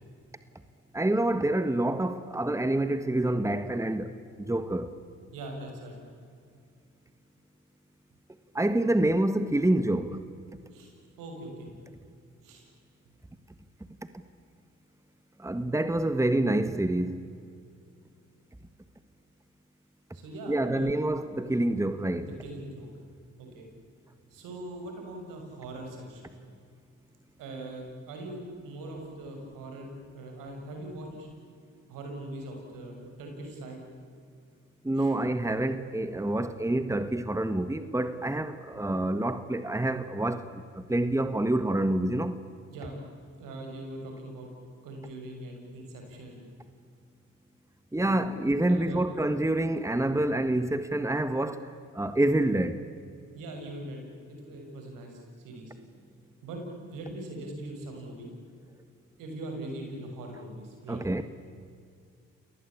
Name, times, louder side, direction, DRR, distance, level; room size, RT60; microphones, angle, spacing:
voice 1, 0.9-4.9 8.5-10.2 15.4-17.2 20.5-22.3 34.8-42.4 47.9-52.8 60.9-61.2, right 1 dB, 10° right, 1.6 m, -27 dB
voice 2, 5.3-6.0 10.7-11.7 12.4-12.7 20.1-20.9 22.2-22.9 23.4-23.7 24.3-26.4 27.4-31.3 31.9-33.8 35.0-35.1 42.7-43.0 43.4-44.5 44.8-46.4 48.0-48.3 48.7-49.1 53.3-55.7 56.4-56.6 56.9-58.3 59.2-61.2, right 1 dB, 80° right, 6.4 m, -41 dB
28.5 x 19.0 x 8.7 m
hypercardioid pair, 50°, 33 cm